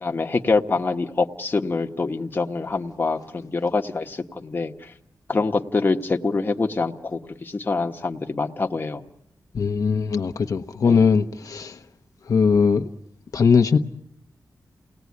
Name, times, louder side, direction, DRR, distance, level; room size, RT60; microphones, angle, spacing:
voice 1, 0.0-4.9 5.3-9.0 10.9-11.0, left 3 dB, 30° left, 1.3 m, -25 dB
voice 2, 9.5-11.8 12.3-12.9 13.3-13.8, left 5 dB, 65° left, 1.1 m, -20 dB
30.0 x 19.0 x 9.6 m
wide cardioid pair, 160°, 6 cm